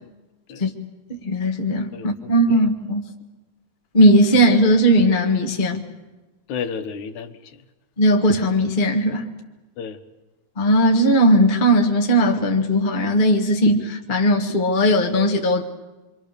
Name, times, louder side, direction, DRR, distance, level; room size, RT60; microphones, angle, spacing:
voice 1, 1.2-3.1 3.9-5.8 8.0-9.3 10.6-15.6, equal, 30° left, 2 dB, 0.9 m, -18 dB
voice 2, 1.9-2.6 6.5-7.6 9.8-10.0, left 6 dB, 70° left, 9 dB, 2.5 m, -32 dB
27.5 x 24.5 x 6.7 m, 1.1 s
omnidirectional pair, 3.9 m